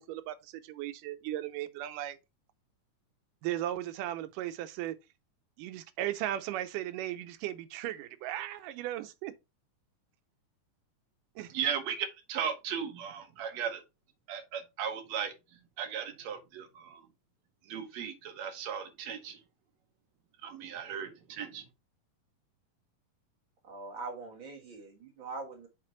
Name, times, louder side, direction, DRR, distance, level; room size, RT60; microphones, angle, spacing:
voice 1, 0.0-2.2 3.4-5.0 5.6-9.3 11.4-11.5, right 13 dB, 90° right, 2.3 m, -36 dB
voice 2, 11.5-13.8 14.3-15.3 15.8-17.0 17.7-19.4 20.4-21.6, right 8 dB, 65° right, 2.1 m, -36 dB
voice 3, 23.7-25.7, right 3 dB, 50° right, 1.8 m, -42 dB
6.3 x 4.3 x 4.3 m
omnidirectional pair, 3.7 m